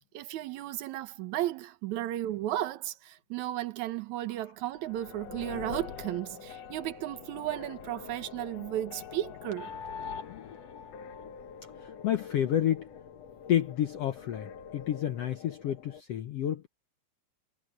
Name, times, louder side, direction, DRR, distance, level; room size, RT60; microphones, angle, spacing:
voice 1, 0.1-9.7, right 13 dB, 65° right, 2.0 m, -34 dB
sound 1, 4.7-16.0, left 7 dB, 60° left, 2.0 m, -44 dB
voice 2, 11.8-12.9 13.5-16.7, left 11 dB, 90° left, 1.3 m, -30 dB
omnidirectional pair, 4.1 m